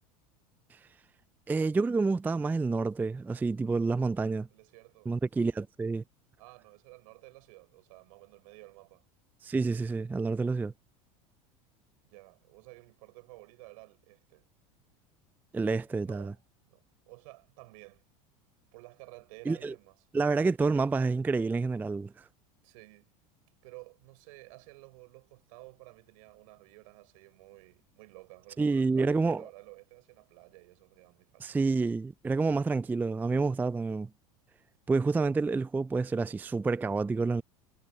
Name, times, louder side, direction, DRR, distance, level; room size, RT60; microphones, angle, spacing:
voice 1, 1.5-4.5 5.1-6.0 9.4-10.7 15.5-16.3 19.5-19.7 20.1-22.3 28.6-29.4 31.4-34.1 34.9-37.4, right 4 dB, 10° right, 0.4 m, -28 dB
voice 2, 4.5-5.1 6.4-9.0 12.0-14.4 16.0-18.0 18.7-20.1 20.6-20.8 22.6-23.1 23.6-31.6, right 26 dB, 70° right, 4.5 m, -53 dB
hypercardioid pair, 90°, 19 cm